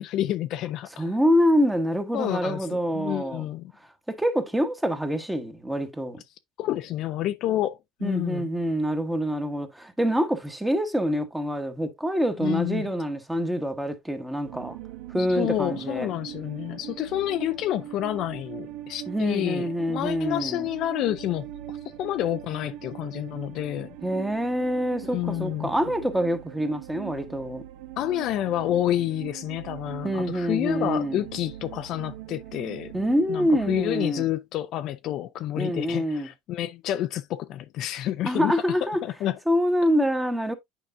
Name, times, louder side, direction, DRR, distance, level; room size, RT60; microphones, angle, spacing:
voice 1, 0.0-1.0 2.1-3.7 6.6-8.5 12.4-12.9 15.2-21.5 22.0-23.9 25.0-25.7 28.0-32.9 33.3-39.4, left 13 dB, 50° left, 0.5 m, -29 dB
voice 2, 1.0-3.5 4.1-6.2 8.0-14.8 15.1-16.1 19.1-20.7 24.0-27.6 30.0-31.2 32.9-34.3 35.6-36.3 38.2-39.0 39.5-40.5, equal, 5° right, 1.1 m, -26 dB
sound 1, 14.4-33.8, right 13 dB, 65° right, 1.0 m, -41 dB
9.1 x 4.8 x 2.5 m
supercardioid pair, 135°, 0 cm